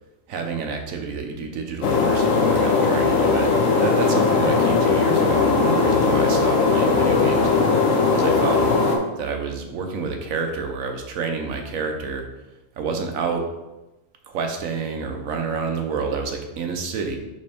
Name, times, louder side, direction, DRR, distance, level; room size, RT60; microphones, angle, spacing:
voice 1, 0.3-7.5 8.1-8.8 9.2-12.3 12.8-13.4 14.3-17.2, right 5 dB, 85° right, 4 dB, 1.2 m, -28 dB
sound 1, 1.8-9.0, left 4 dB, 80° left, 1.2 m, -19 dB
5.4 x 5.1 x 3.5 m, 1.0 s
omnidirectional pair, 1.4 m